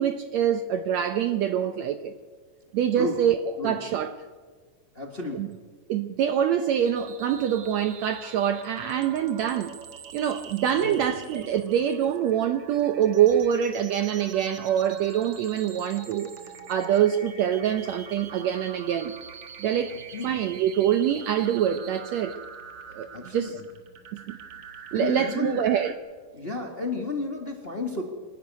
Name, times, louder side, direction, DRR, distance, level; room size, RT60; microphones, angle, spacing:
voice 1, 0.0-2.1 2.7-4.1 5.3-5.5 5.9-9.7 10.1-16.3 16.7-19.1 19.6-20.0 20.2-22.4 22.9-23.1 23.3-23.6 24.1-24.2 24.9-25.9, right 9 dB, 75° right, 1.6 m, -25 dB
voice 2, 4.9-5.5 10.6-11.0 19.9-20.4 23.1-23.5 24.9-25.6 26.3-28.0, left 3 dB, 30° left, 1.2 m, -32 dB
sound 1, 6.8-25.9, right 6 dB, 55° right, 2.1 m, -44 dB
25.0 x 11.5 x 9.6 m
omnidirectional pair, 3.8 m